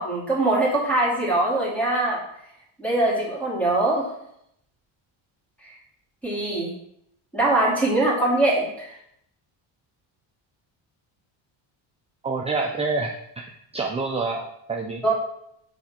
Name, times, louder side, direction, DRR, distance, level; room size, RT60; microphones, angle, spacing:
voice 1, 0.0-2.2 2.8-4.1 5.6-5.7 6.2-6.7 7.3-8.9 15.0-15.1, right 2 dB, 5° left, -6 dB, 2.5 m, -22 dB
voice 2, 12.2-13.1 13.7-15.0, right 3 dB, 15° right, 1 dB, 0.3 m, -27 dB
7.3 x 3.4 x 5.8 m, 0.74 s
cardioid pair, 150°, 49 cm